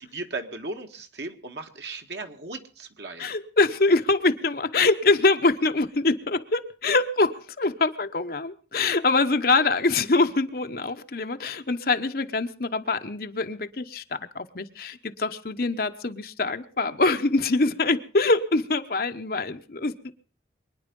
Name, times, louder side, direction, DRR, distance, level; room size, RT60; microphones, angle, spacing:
voice 1, 0.1-3.2, right 3 dB, 75° right, 5 dB, 1.7 m, -36 dB
voice 2, 3.2-19.9, left 3 dB, 55° left, 8 dB, 1.0 m, -24 dB
24.0 x 10.0 x 5.4 m, 0.41 s
head